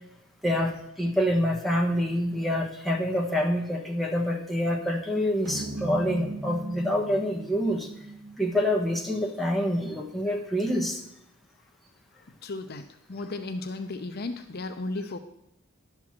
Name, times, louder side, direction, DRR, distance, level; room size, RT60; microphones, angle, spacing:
voice 1, 0.4-7.9 8.4-11.0, equal, ahead, -1 dB, 1.1 m, -26 dB
sound 1, 5.5-10.1, right 2 dB, 65° right, 1.4 m, -38 dB
voice 2, 12.4-12.8 13.1-15.2, left 2 dB, 50° left, 7 dB, 0.6 m, -34 dB
11.0 x 4.6 x 7.3 m, 0.85 s
head